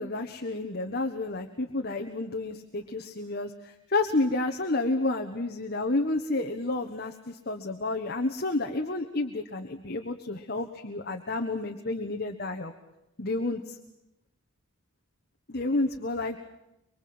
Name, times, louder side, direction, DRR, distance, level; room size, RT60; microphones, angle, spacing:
voice 1, 0.0-12.7 13.2-13.8 15.5-16.4, left 2 dB, 45° left, 4 dB, 1.3 m, -30 dB
24.0 x 24.0 x 7.8 m, 0.89 s
head